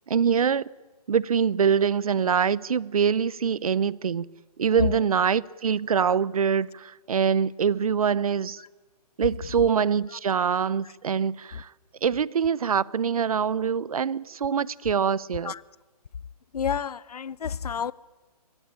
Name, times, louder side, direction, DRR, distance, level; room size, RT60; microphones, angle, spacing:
voice 1, 0.1-0.6 1.1-4.3 4.6-8.6 9.2-11.7 12.0-15.5, right 7 dB, 65° right, 0.7 m, -24 dB
voice 2, 16.5-17.9, left 7 dB, 70° left, 0.7 m, -29 dB
23.5 x 18.5 x 9.9 m
hypercardioid pair, 175°, 20 cm